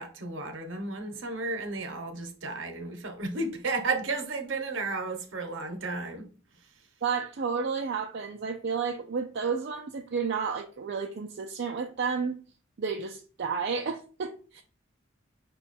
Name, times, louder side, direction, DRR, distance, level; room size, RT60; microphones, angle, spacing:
voice 1, 0.0-6.3, right 3 dB, 75° right, 0.9 m, -33 dB
voice 2, 7.0-12.4 12.8-14.6, right 5 dB, 55° right, 0.4 m, -31 dB
5.5 x 2.3 x 4.1 m
head